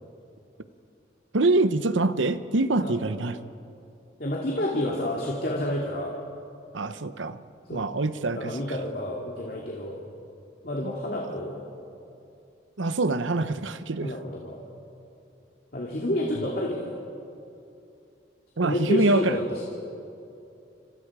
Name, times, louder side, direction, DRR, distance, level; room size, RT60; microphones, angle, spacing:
voice 1, 1.3-3.4 6.7-7.4 7.7-8.6 10.8-10.9 12.8-14.1 18.6-19.4, right 2 dB, 90° right, 12 dB, 0.9 m, -25 dB
voice 2, 4.2-6.2 7.7-7.9 8.3-10.0 10.6-11.7 14.0-14.7 15.7-16.9 18.6-19.6, left 1 dB, 50° left, -2 dB, 2.5 m, -29 dB
27.5 x 26.0 x 4.9 m, 2.7 s
head